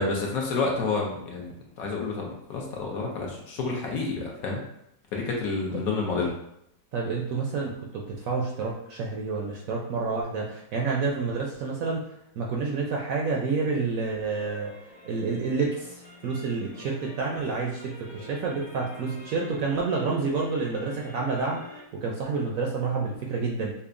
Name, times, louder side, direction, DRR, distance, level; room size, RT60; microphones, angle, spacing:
voice 1, 0.0-1.5 1.8-4.6 5.1-6.3, left 3 dB, 65° left, -1 dB, 1.0 m, -29 dB
voice 2, 6.9-12.0 12.4-14.7 15.0-23.7, right 4 dB, 70° right, -1 dB, 0.8 m, -29 dB
sound 1, 14.3-21.8, left 2 dB, 85° left, 1.7 m, -46 dB
5.5 x 2.1 x 2.5 m, 0.77 s
omnidirectional pair, 1.8 m